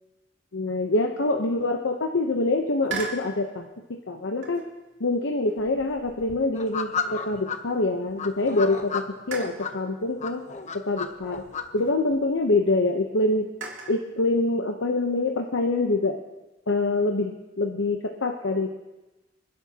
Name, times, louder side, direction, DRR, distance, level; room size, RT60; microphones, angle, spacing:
voice 1, 0.5-3.7 4.1-4.6 5.0-10.4 10.7-11.4 11.7-13.5 13.9-16.2 16.7-18.8, left 2 dB, 80° left, 2 dB, 0.9 m, -25 dB
sound 1, 2.9-3.3 4.4-4.8 5.5-7.8 8.2-8.3 9.3-9.7 10.9-12.3 13.6-14.0, right 4 dB, 70° right, 2.6 m, -39 dB
sound 2, 6.5-7.6 8.2-9.7 10.2-11.6, left 6 dB, 40° left, 0.9 m, -32 dB
27.0 x 11.0 x 2.9 m, 1.1 s
head